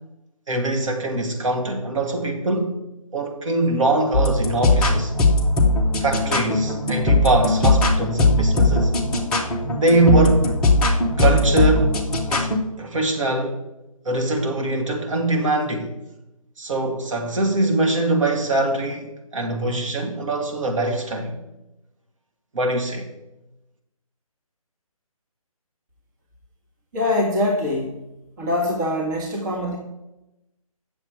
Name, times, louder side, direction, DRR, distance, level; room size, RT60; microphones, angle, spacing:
voice 1, 0.5-2.8 3.1-5.1 6.0-8.9 9.7-10.5 11.2-12.0 12.3-13.6 14.0-15.9 16.6-21.4 22.5-23.1, right 2 dB, 60° right, 1 dB, 2.2 m, -22 dB
sound 1, 4.1-12.6, left 2 dB, 5° left, 0.7 m, -19 dB
voice 2, 26.9-28.1 28.4-29.8, left 1 dB, 30° right, -1 dB, 1.4 m, -23 dB
8.8 x 7.0 x 4.7 m, 0.92 s
figure-of-eight pair, 155°, 19 cm